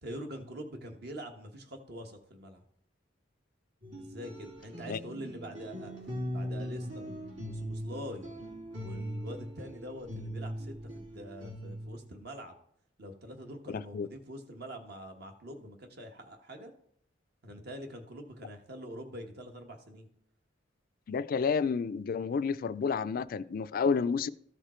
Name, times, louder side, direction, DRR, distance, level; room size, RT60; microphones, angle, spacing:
voice 1, 0.0-2.6 4.0-5.9 6.3-7.0 7.4-8.3 8.7-12.6 13.0-16.7 17.4-20.1, equal, 60° right, 1.2 m, -44 dB
sound 1, 3.8-12.0, equal, 80° right, 3.1 m, -40 dB
voice 2, 13.7-14.1 21.1-24.3, left 5 dB, 50° left, 0.3 m, -30 dB
13.5 x 5.0 x 4.3 m
head